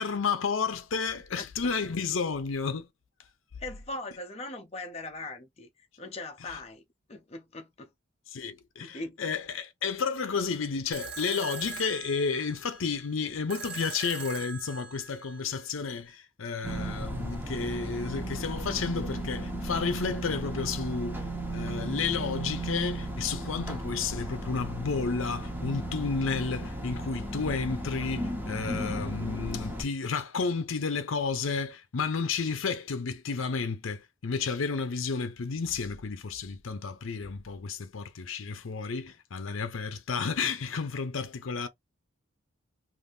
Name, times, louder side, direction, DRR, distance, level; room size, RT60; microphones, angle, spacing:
voice 1, 0.0-2.9 6.5-6.6 8.3-21.2 21.5-41.7, left 5 dB, 75° left, 0.6 m, -31 dB
voice 2, 1.3-1.7 3.6-6.8 7.1-7.9 8.8-9.2, left 2 dB, 30° left, 0.5 m, -40 dB
sound 1, 10.9-15.9, right 4 dB, 55° right, 0.7 m, -42 dB
sound 2, 16.6-29.8, right 1 dB, 10° right, 0.6 m, -35 dB
2.6 x 2.6 x 3.4 m
head